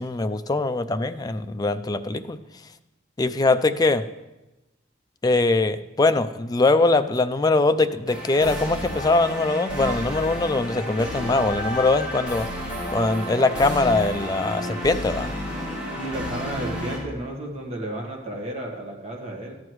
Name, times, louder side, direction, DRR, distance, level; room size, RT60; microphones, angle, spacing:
voice 1, 0.0-2.4 3.2-4.0 5.2-12.5 12.9-15.3, left 3 dB, 20° left, 9 dB, 0.3 m, -22 dB
sound 1, 8.1-17.0, equal, 5° right, 3.3 m, -31 dB
voice 2, 15.9-19.6, right 1 dB, 30° right, 0 dB, 1.5 m, -32 dB
13.5 x 9.4 x 3.1 m, 1.0 s
head